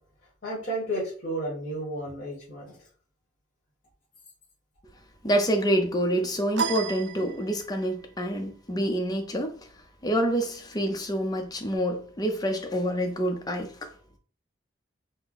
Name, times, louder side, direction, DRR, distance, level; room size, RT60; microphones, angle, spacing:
voice 1, 0.4-2.8, right 1 dB, 45° left, 1.7 m, -32 dB
voice 2, 5.2-9.5 10.0-13.7, equal, 20° left, 0.6 m, -27 dB
sound 1, 6.6-7.9, right 6 dB, 65° right, 0.4 m, -32 dB
4.2 x 2.1 x 4.0 m
head